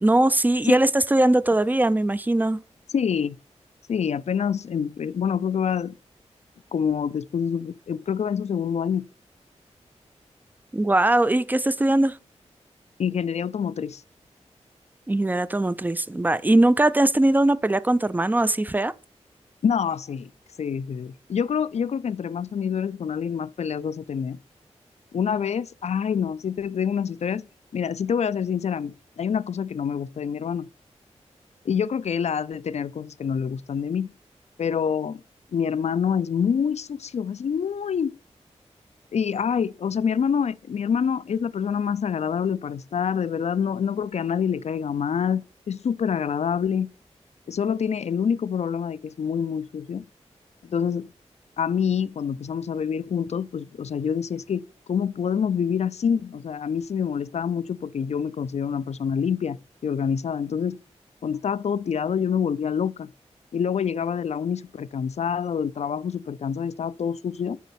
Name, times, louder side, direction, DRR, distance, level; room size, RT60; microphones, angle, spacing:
voice 1, 0.0-2.6 10.7-12.2 15.1-18.9, right 1 dB, 15° right, 0.4 m, -20 dB
voice 2, 2.9-3.4 3.9-5.9 6.7-9.0 13.0-14.0 19.6-20.3 20.6-24.4 25.1-27.4 27.7-30.7 31.6-34.1 34.6-35.2 35.5-38.1 39.1-46.9 47.5-50.0 50.6-51.1 51.6-54.6 54.9-60.8 61.2-63.1 63.5-67.6, left 7 dB, 65° left, 0.5 m, -26 dB
9.3 x 4.1 x 5.8 m
wide cardioid pair, 70°, 12 cm